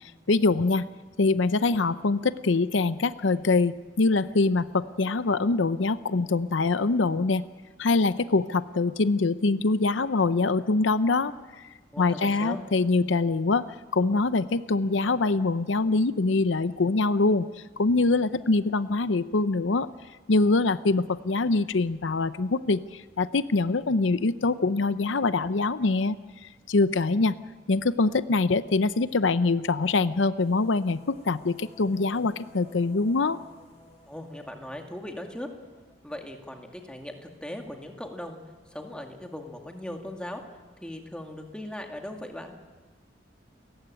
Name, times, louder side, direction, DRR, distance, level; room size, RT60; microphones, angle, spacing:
voice 1, 0.3-0.9 1.2-7.5 7.8-11.3 12.0-13.7 13.9-17.5 17.8-19.9 20.3-26.2 26.7-27.3 27.7-33.4, left 3 dB, 80° left, 14 dB, 0.7 m, -24 dB
voice 2, 11.9-12.6 34.1-35.5 36.0-38.4 38.7-40.4 40.8-42.6, left 1 dB, 5° left, 3 dB, 2.3 m, -39 dB
sound 1, 30.4-37.4, equal, 35° left, 6.3 m, -56 dB
30.0 x 14.5 x 9.1 m, 1.4 s
head